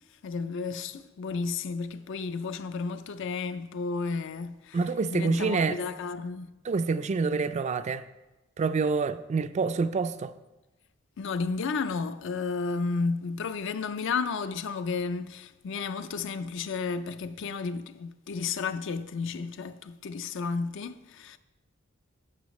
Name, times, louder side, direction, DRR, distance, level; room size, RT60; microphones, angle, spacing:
voice 1, 0.2-4.8 5.1-6.5 11.2-21.4, left 4 dB, 65° left, 0.4 m, -32 dB
voice 2, 4.7-5.8 6.7-8.0 8.6-10.3, right 4 dB, 35° right, 0.3 m, -27 dB
13.0 x 5.7 x 3.1 m
head